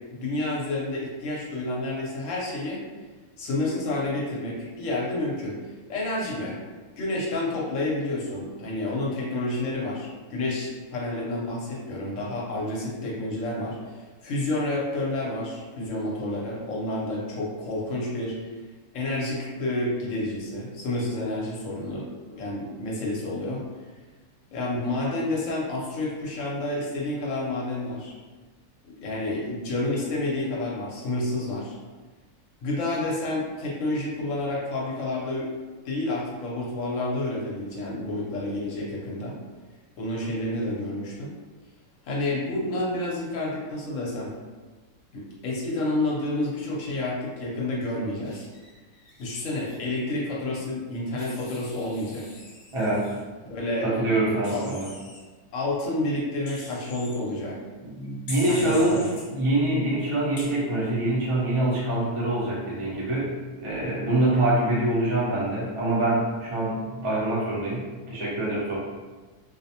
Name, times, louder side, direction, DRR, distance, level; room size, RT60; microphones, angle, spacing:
voice 1, 0.1-2.8 3.4-5.6 5.9-6.5 7.0-18.3 18.9-22.0 22.3-23.6 24.5-28.1 28.8-31.8 32.6-35.5 35.8-39.3 40.0-41.3 42.1-44.3 45.1-48.5 49.2-52.3 53.5-53.9 54.5-54.8 55.5-57.5 58.5-59.1, left 2 dB, 65° left, -4 dB, 0.9 m, -29 dB
Wild animals, 48.2-49.8 51.2-53.2 54.4-55.2 56.5-57.2 58.3-59.2 60.4-60.5, left 2 dB, 85° left, 0.4 m, -43 dB
voice 2, 52.7-53.1 53.8-54.9 57.8-59.0 59.3-63.3 63.6-68.9, right 1 dB, 40° right, -7 dB, 0.4 m, -25 dB
2.6 x 2.0 x 2.8 m, 1.3 s
omnidirectional pair, 1.6 m